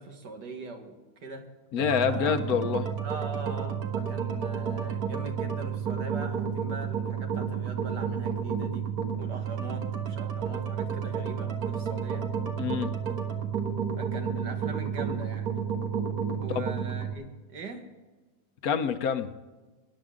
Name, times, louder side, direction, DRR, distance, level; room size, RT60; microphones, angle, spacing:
voice 1, 0.0-1.5 2.0-2.4 3.0-8.9 9.2-12.3 14.0-15.6 16.4-17.8, right 2 dB, 85° right, 4 dB, 2.2 m, -41 dB
voice 2, 1.7-2.9 12.6-12.9 16.5-16.6 18.6-19.3, left 7 dB, 65° left, 10 dB, 1.2 m, -27 dB
sound 1, 1.8-17.1, right 7 dB, 65° right, 1.9 m, -31 dB
20.5 x 10.0 x 3.7 m, 1.2 s
omnidirectional pair, 1.7 m